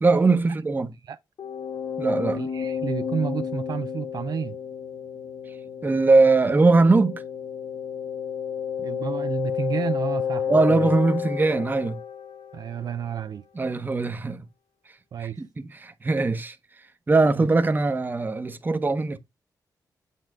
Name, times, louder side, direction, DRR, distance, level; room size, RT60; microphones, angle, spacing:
voice 1, 0.0-0.9 2.0-2.4 5.8-7.2 10.5-12.0 13.5-14.5 15.2-16.6 17.1-19.2, right 3 dB, 25° right, 0.9 m, -21 dB
sound 1, 1.4-13.0, left 8 dB, 85° left, 1.9 m, -31 dB
voice 2, 2.4-4.6 8.8-10.9 12.5-13.4 15.1-15.4 17.3-17.5, right 7 dB, 65° right, 0.5 m, -30 dB
8.5 x 3.9 x 3.6 m
wide cardioid pair, 115°, 7 cm